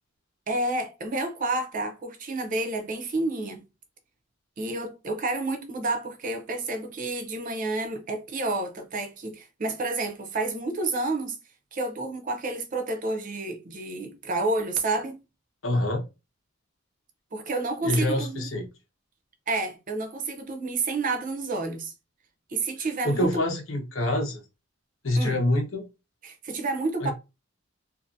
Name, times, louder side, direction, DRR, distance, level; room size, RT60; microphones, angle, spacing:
voice 1, 0.5-3.6 4.6-11.4 11.7-15.2 17.3-18.5 19.5-21.9 22.5-23.4 25.2-25.4 26.2-27.1, right 2 dB, 40° right, 0.5 m, -30 dB
voice 2, 15.6-16.0 17.8-18.7 23.0-24.4 25.0-25.9 27.0-27.1, left 1 dB, 75° left, 1.0 m, -26 dB
2.6 x 2.5 x 2.6 m
head